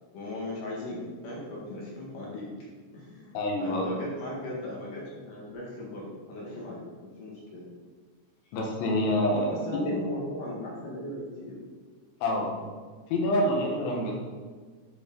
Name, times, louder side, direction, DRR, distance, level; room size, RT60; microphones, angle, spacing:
voice 1, 0.1-2.5 2.9-7.7 9.3-11.6, left 1 dB, 55° left, -4 dB, 2.6 m, -38 dB
voice 2, 3.3-4.0 8.5-9.6 12.2-12.7 13.1-14.2, left 1 dB, 75° left, -1 dB, 3.5 m, -27 dB
12.5 x 5.2 x 4.0 m, 1.5 s
omnidirectional pair, 5.7 m